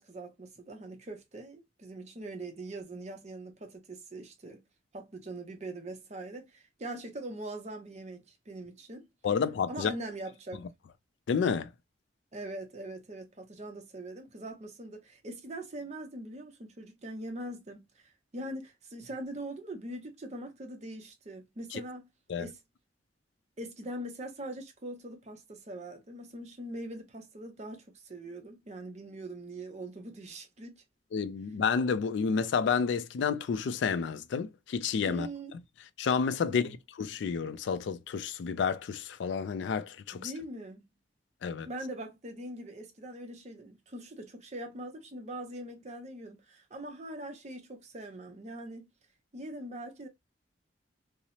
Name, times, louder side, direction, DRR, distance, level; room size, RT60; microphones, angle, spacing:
voice 1, 0.0-4.6 4.9-9.1 9.7-10.6 12.3-22.1 22.4-22.6 23.6-30.8 35.0-35.6 36.4-36.8 40.1-40.9 41.6-48.9 49.3-50.1, right 1 dB, 35° right, 0.6 m, -42 dB
voice 2, 9.2-9.9 11.3-11.7 21.7-21.8 22.3-22.5 31.1-35.3 36.0-40.3 41.4-41.7, left 6 dB, 70° left, 0.3 m, -30 dB
2.8 x 2.0 x 2.6 m
head